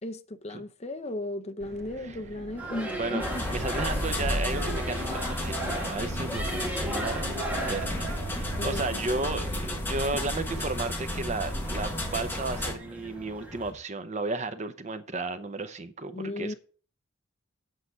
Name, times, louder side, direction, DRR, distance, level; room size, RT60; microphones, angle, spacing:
voice 1, 0.0-3.4 8.6-9.2 16.1-16.5, left 1 dB, 30° left, 0.7 m, -36 dB
sound 1, 1.6-9.6, equal, 55° right, 1.0 m, -45 dB
sound 2, 2.6-13.7, right 1 dB, 5° right, 1.7 m, -38 dB
voice 2, 3.0-16.5, right 3 dB, 35° right, 0.7 m, -34 dB
sound 3, 3.2-12.8, left 1 dB, 10° left, 1.5 m, -32 dB
8.2 x 5.8 x 6.5 m
head